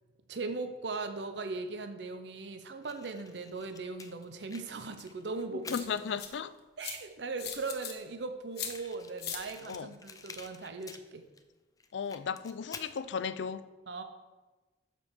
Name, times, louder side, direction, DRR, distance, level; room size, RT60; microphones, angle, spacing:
voice 1, 0.3-5.8 6.8-11.2 13.9-14.0, right 3 dB, 70° right, 0.7 m, -39 dB
Fire, 2.8-6.6 7.3-7.4 7.6-7.7 7.9-8.0 8.5-11.4 11.8-13.0, left 5 dB, 20° left, 0.5 m, -50 dB
sound 1, 5.0-5.1 5.7-6.3 6.8-7.0 7.4-7.9 8.6-8.7 9.2-9.4, left 8 dB, 60° left, 1.1 m, -38 dB
voice 2, 5.7-6.5 9.6-9.9 11.9-13.7, left 6 dB, 80° left, 0.4 m, -35 dB
7.6 x 5.3 x 6.5 m
head